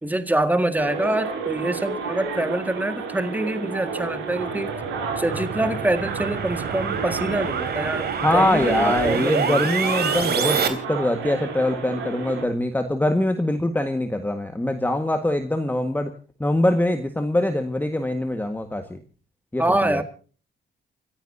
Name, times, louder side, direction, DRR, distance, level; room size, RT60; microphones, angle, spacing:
voice 1, 0.0-4.7 5.2-9.9 19.6-20.0, right 1 dB, 10° right, 9 dB, 1.8 m, -25 dB
sound 1, 0.8-12.4, right 5 dB, 90° right, 7.3 m, -31 dB
sound 2, 4.2-10.7, right 6 dB, 55° right, 3.1 m, -28 dB
voice 2, 8.2-16.1 16.4-19.0 19.5-20.0, left 1 dB, 10° left, 6 dB, 1.6 m, -23 dB
29.0 x 14.5 x 2.7 m, 0.39 s
cardioid pair, 90°, 20 cm